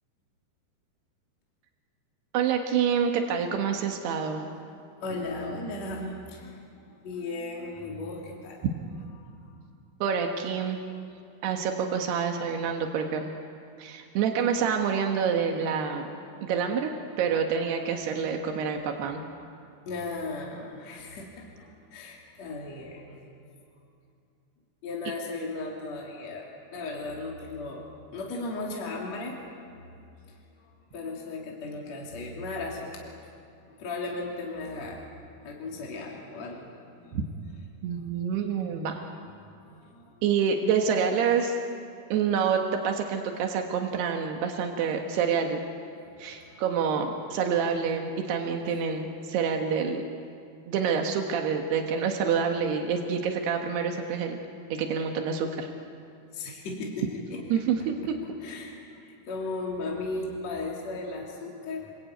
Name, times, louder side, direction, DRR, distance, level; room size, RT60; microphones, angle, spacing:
voice 1, 2.3-4.5 10.0-10.8 11.4-13.3 13.8-16.1 16.4-19.2 37.1-37.2 37.8-39.0 40.2-41.6 42.1-45.6 46.2-50.0 50.7-54.4 54.7-55.7 57.5-58.2, right 6 dB, 90° right, 3 dB, 3.6 m, -27 dB
voice 2, 5.0-8.7 9.2-9.3 18.4-18.5 19.9-23.2 24.8-27.8 28.1-29.4 30.3-30.4 30.9-33.1 33.7-35.1 35.4-37.2 37.9-38.0 39.2-39.3 39.7-40.2 44.7-44.8 46.1-46.6 56.3-57.4 58.4-61.9, left 3 dB, 45° left, -2 dB, 3.8 m, -36 dB
29.0 x 22.0 x 9.1 m, 2.6 s
omnidirectional pair, 4.5 m